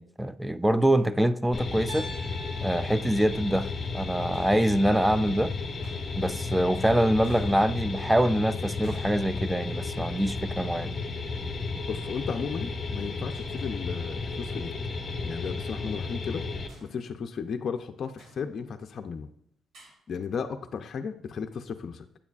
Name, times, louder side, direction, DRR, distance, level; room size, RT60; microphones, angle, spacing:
voice 1, 0.0-2.1 2.6-5.5 6.2-11.0, right 1 dB, 5° right, 0.4 m, -25 dB
sound 1, 1.5-16.7, left 4 dB, 30° left, 0.9 m, -33 dB
Piano, 1.9-5.9, left 1 dB, 50° right, 2.8 m, -46 dB
sound 2, 4.3-5.3 5.8-6.7 7.2-8.3 8.8-10.1 11.4-11.5 13.0-13.7 14.0-14.1 14.5-14.6 16.7-17.8 18.2-19.0 19.7-20.0, right 1 dB, 75° right, 2.6 m, -55 dB
voice 2, 11.9-14.7 15.2-16.4 16.8-19.3 20.1-22.1, left 6 dB, 55° left, 0.5 m, -35 dB
8.6 x 7.0 x 2.4 m
cardioid pair, 90°, 0 cm